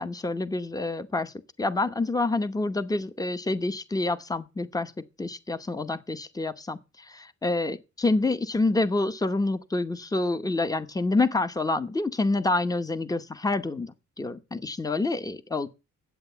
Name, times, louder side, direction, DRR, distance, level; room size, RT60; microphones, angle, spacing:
voice 1, 0.0-1.3 1.6-4.9 5.2-6.8 7.1-15.7, left 2 dB, 10° left, 0.8 m, -27 dB
10.5 x 8.1 x 6.8 m
wide cardioid pair, 115°, 30 cm